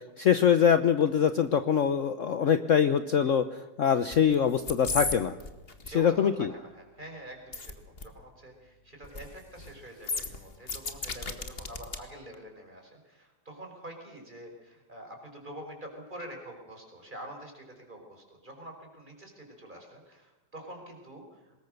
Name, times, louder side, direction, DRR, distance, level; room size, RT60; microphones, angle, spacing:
voice 1, 0.2-5.4 5.9-6.5, left 8 dB, 55° left, 10 dB, 1.1 m, -24 dB
sound 1, 4.1-4.3 4.6-5.1 5.4-5.9 7.5-7.7 8.0-8.1 9.0-9.3 9.6-9.7 10.0-12.0 12.3-12.4, left 3 dB, 35° left, 2.0 m, -34 dB
voice 2, 5.8-21.6, right 1 dB, 25° right, 2 dB, 5.5 m, -46 dB
24.5 x 21.0 x 6.6 m, 1.1 s
omnidirectional pair, 1.8 m